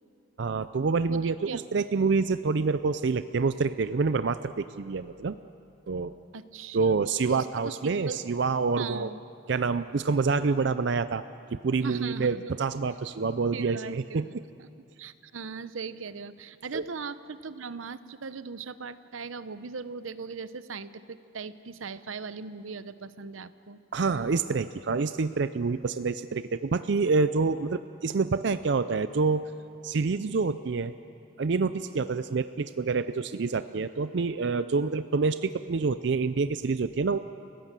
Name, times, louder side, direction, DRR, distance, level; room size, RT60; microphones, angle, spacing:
voice 1, 0.4-5.4 5.9-6.1 6.7-9.1 9.5-11.2 11.5-14.2 16.7-16.9 23.9-29.5 29.8-30.9 31.4-37.2, right 4 dB, 60° right, 12 dB, 0.5 m, -27 dB
voice 2, 1.1-1.6 6.3-7.0 7.3-8.2 8.8-9.2 11.8-12.4 13.5-14.7 15.0-23.8, right 4 dB, 90° right, 13 dB, 0.8 m, -39 dB
30.0 x 16.0 x 7.5 m, 2.6 s
head